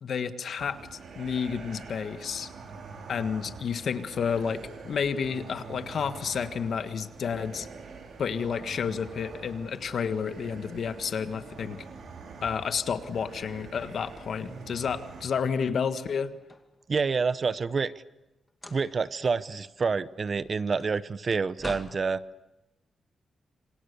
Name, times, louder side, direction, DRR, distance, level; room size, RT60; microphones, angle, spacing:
voice 1, 0.0-2.5 3.1-7.7 8.2-11.8 12.4-16.3, left 6 dB, 65° left, 10 dB, 1.6 m, -31 dB
sound 1, 0.6-15.3, right 4 dB, 70° right, 5.0 m, -45 dB
sound 2, 16.2-17.3 18.5-19.1 19.5-22.0, left 1 dB, 15° left, 2.4 m, -45 dB
voice 2, 16.9-17.9 18.7-22.2, right 5 dB, 40° right, 16 dB, 0.8 m, -28 dB
27.0 x 25.5 x 6.9 m, 1.0 s
cardioid pair, 105°, 0 cm